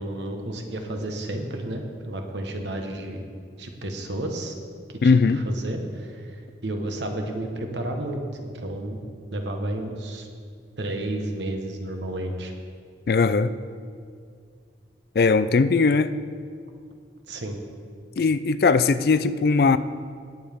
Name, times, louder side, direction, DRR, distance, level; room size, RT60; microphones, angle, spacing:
voice 1, 0.0-3.2 3.6-4.5 5.0-5.1 5.4-9.0 9.3-10.3 10.8-12.5 17.3-17.6, right 1 dB, 85° right, 4 dB, 1.3 m, -31 dB
voice 2, 5.0-5.4 13.1-13.5 15.2-16.1 18.2-19.8, left 4 dB, 55° left, 14 dB, 0.4 m, -19 dB
19.0 x 7.1 x 3.5 m, 2.2 s
head